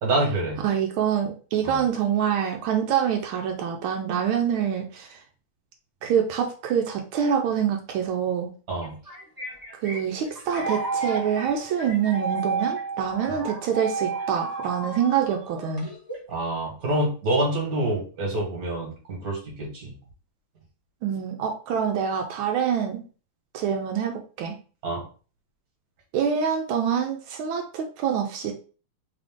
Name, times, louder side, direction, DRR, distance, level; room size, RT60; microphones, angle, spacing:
voice 1, 0.0-0.6 1.6-1.8 8.7-9.0 13.3-13.4 16.3-19.9 24.8-25.0, right 1 dB, 50° right, -1 dB, 1.7 m, -27 dB
voice 2, 0.6-5.2 6.0-8.5 9.8-15.9 21.0-23.0 23.5-24.6 26.1-28.5, right 8 dB, 85° right, 3 dB, 1.5 m, -26 dB
sound 1, 8.8-16.3, right 4 dB, 25° right, 0.5 m, -32 dB
3.7 x 2.5 x 3.6 m, 0.37 s
omnidirectional pair, 2.2 m